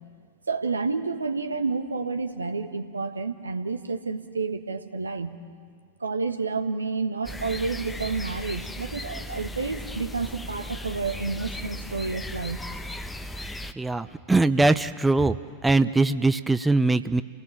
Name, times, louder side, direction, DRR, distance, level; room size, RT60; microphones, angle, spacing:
voice 1, 0.5-5.4 6.0-12.6, right 4 dB, 80° right, 7 dB, 1.4 m, -30 dB
sound 1, 7.2-13.7, left 1 dB, 10° left, 1.1 m, -36 dB
voice 2, 13.8-15.4 15.6-17.2, right 2 dB, 10° right, 12 dB, 0.6 m, -21 dB
29.5 x 18.5 x 7.3 m, 2.1 s
figure-of-eight pair, 90°, 0 cm